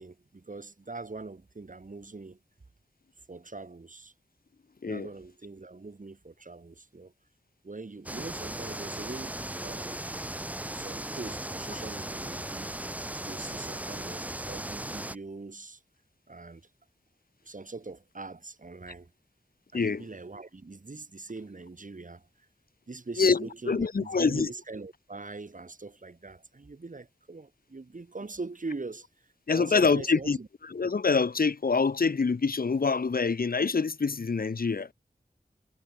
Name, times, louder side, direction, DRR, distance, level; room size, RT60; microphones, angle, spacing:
voice 1, 0.0-2.4 3.3-4.1 4.8-7.1 7.6-10.0 10.7-12.7 13.2-15.8 16.3-16.7 17.4-19.1 19.7-22.3 22.9-29.1 29.5-30.5, right 3 dB, 55° right, 5.8 m, -42 dB
sound 1, 8.1-15.2, right 1 dB, 10° right, 0.5 m, -37 dB
voice 2, 23.2-24.5 29.5-30.4 30.6-34.9, left 4 dB, 70° left, 1.3 m, -26 dB
wide cardioid pair, 70°, 16 cm